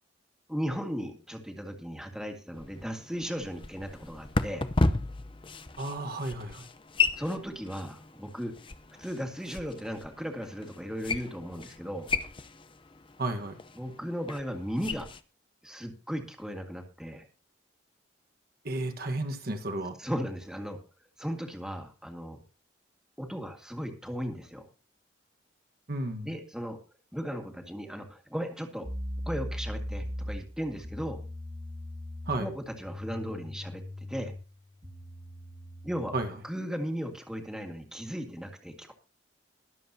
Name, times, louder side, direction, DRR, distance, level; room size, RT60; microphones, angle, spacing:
voice 1, 0.5-4.6 7.2-8.5 9.0-12.1 13.7-15.1 15.6-17.3 20.0-20.8 21.2-22.4 23.2-24.7 26.2-26.8 27.1-28.9 29.3-31.2 32.4-33.8 34.1-34.3 35.8-36.1 36.4-38.9, equal, 5° right, 3 dB, 1.9 m, -36 dB
sound 1, 2.5-15.2, left 3 dB, 25° left, 0.7 m, -34 dB
voice 2, 5.8-6.7 13.2-13.6 18.6-19.9 25.9-26.3 32.3-32.5 36.1-36.3, right 2 dB, 55° right, 6 dB, 1.4 m, -32 dB
sound 2, 28.8-36.4, left 1 dB, 25° right, 1.8 m, -39 dB
22.0 x 7.7 x 2.8 m, 0.33 s
head